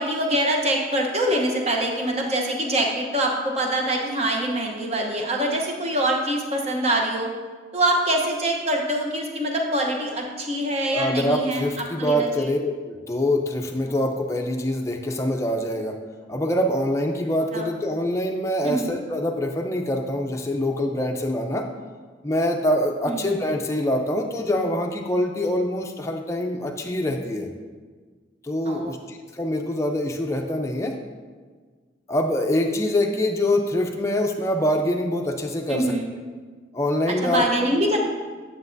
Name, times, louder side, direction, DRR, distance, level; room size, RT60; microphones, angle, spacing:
voice 1, 0.0-7.3 7.7-11.6 12.0-12.5 17.5-17.7 18.6-18.9 23.1-23.2 28.7-28.9 35.7-36.1 37.2-38.0, right 1 dB, 35° right, 1 dB, 0.9 m, -24 dB
voice 2, 10.8-16.0 16.3-21.7 22.2-27.5 28.4-31.0 32.1-36.0 36.7-37.4 37.8-37.9, left 1 dB, 15° left, 3 dB, 0.5 m, -24 dB
9.6 x 6.9 x 2.6 m, 1.5 s
head